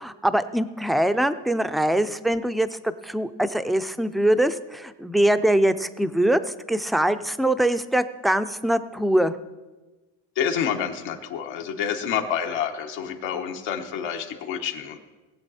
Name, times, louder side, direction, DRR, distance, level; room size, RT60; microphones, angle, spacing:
voice 1, 0.0-6.4 6.7-9.3, right 1 dB, ahead, 11 dB, 0.3 m, -23 dB
voice 2, 10.4-15.0, left 8 dB, 85° left, 4 dB, 1.4 m, -28 dB
19.0 x 7.9 x 4.2 m, 1.2 s
cardioid pair, 105°, 45 cm